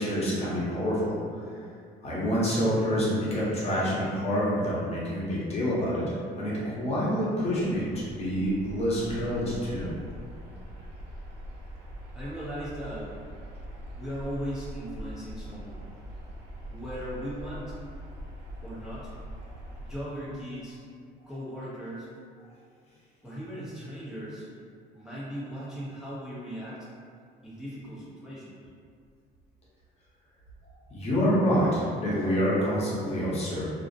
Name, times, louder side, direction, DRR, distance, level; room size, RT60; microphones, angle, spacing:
voice 1, 0.0-1.6 2.0-9.9 30.9-33.7, equal, 40° left, -7 dB, 0.8 m, -27 dB
sound 1, 7.4-20.0, equal, 75° right, 0.5 m, -43 dB
voice 2, 12.1-13.1 13.9-15.8 16.7-17.7 18.6-19.1 19.8-20.8 21.3-22.1 23.2-24.5 24.9-26.8 27.4-28.6, equal, 5° right, -10 dB, 0.5 m, -38 dB
2.5 x 2.0 x 2.6 m, 2.2 s
cardioid pair, 110°, 17 cm